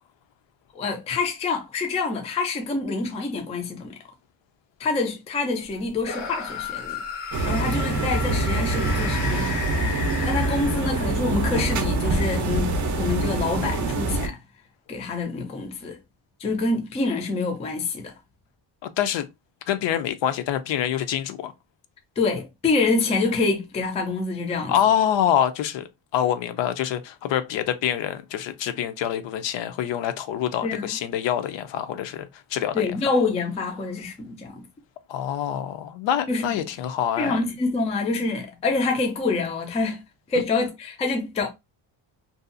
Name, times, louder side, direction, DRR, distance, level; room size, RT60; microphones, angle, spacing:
voice 1, 0.7-3.9 4.8-7.0 7.4-9.6 10.2-14.4 14.9-16.0 16.4-18.1 22.2-24.8 30.6-31.0 32.7-34.6 36.3-36.4 37.2-40.0 40.3-41.5, left 3 dB, 15° left, 0.3 m, -26 dB
sound 1, 6.0-11.2, left 5 dB, 85° left, 1.1 m, -33 dB
sound 2, 7.3-14.3, right 2 dB, 40° right, 0.5 m, -25 dB
voice 2, 18.8-19.3 19.7-21.5 24.7-25.9 26.1-32.9 35.1-37.4, left 10 dB, 65° left, 0.5 m, -25 dB
2.6 x 2.3 x 2.5 m
cardioid pair, 150°, 49 cm